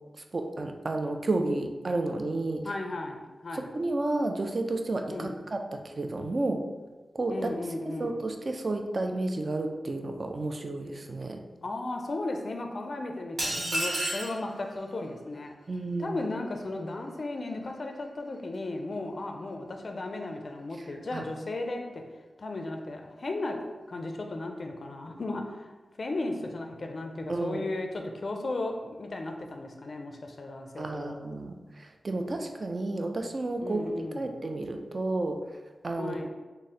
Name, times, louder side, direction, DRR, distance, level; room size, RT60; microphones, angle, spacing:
voice 1, 0.2-2.6 3.5-6.6 7.1-7.3 7.9-11.4 13.6-13.8 15.7-16.2 21.1-21.2 27.3-27.6 30.8-35.4 35.8-36.2, right 2 dB, 40° right, 4 dB, 0.4 m, -31 dB
voice 2, 2.6-3.7 5.1-5.3 7.3-8.2 11.6-15.5 16.0-22.0 22.4-23.6 23.9-25.7 26.0-31.1 33.6-34.3 36.0-36.3, left 2 dB, 50° left, 3 dB, 0.4 m, -35 dB
sound 1, 13.4-14.4, right 1 dB, 90° right, 1.0 m, -30 dB
3.6 x 2.0 x 4.1 m, 1.2 s
wide cardioid pair, 135°, 0 cm